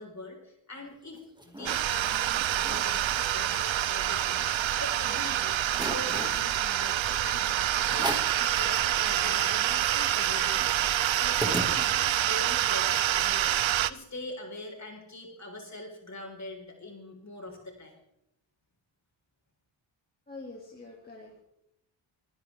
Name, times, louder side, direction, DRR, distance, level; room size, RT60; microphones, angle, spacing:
voice 1, 0.0-17.9, left 2 dB, 35° left, 1 dB, 4.5 m, -43 dB
sound 1, 0.9-1.8 2.2-2.3 2.5-2.9 3.3-4.8 5.2-5.3 5.7-6.4 7.1-7.3 7.9-8.4 8.9-9.0 9.2-12.2, right 1 dB, 10° right, 2.1 m, -37 dB
sound 2, 1.7-13.9, right 12 dB, 70° right, 0.7 m, -27 dB
voice 2, 20.3-21.4, left 3 dB, 20° left, -3 dB, 2.5 m, -45 dB
25.5 x 10.5 x 3.6 m, 0.80 s
wide cardioid pair, 125°, 48 cm